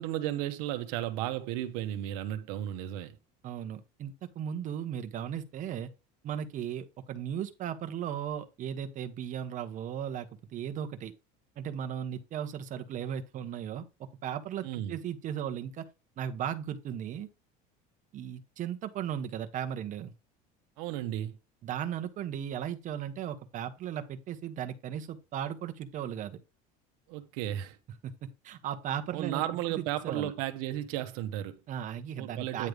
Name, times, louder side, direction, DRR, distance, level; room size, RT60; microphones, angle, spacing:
voice 1, 0.0-3.2 14.6-15.0 20.8-21.4 27.1-27.8 29.1-31.6 32.2-32.7, right 12 dB, 85° right, 1.1 m, -34 dB
voice 2, 3.4-5.9 6.2-11.1 11.6-15.9 16.2-17.3 18.1-20.1 21.6-26.4 28.0-30.3 31.7-32.7, right 9 dB, 45° right, 1.1 m, -36 dB
9.6 x 3.3 x 5.2 m
cardioid pair, 135°, 19 cm